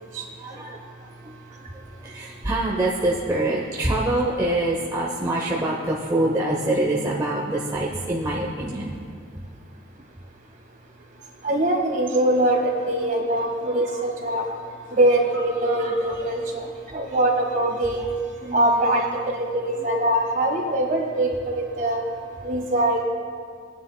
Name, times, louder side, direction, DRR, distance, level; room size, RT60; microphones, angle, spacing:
voice 1, 0.0-9.0 10.0-10.1 11.2-11.3 12.9-13.0 13.5-13.6 14.4-14.6 15.9-16.2 16.6-17.1 18.4-19.5 19.8-20.0 22.4-22.5, right 1 dB, 20° right, -3 dB, 0.7 m, -26 dB
voice 2, 11.4-14.4 14.9-16.7 16.9-18.1 18.5-19.0 19.3-22.0 22.4-23.0, right 1 dB, 40° right, 0 dB, 1.6 m, -22 dB
18.5 x 10.0 x 2.2 m, 2.1 s
head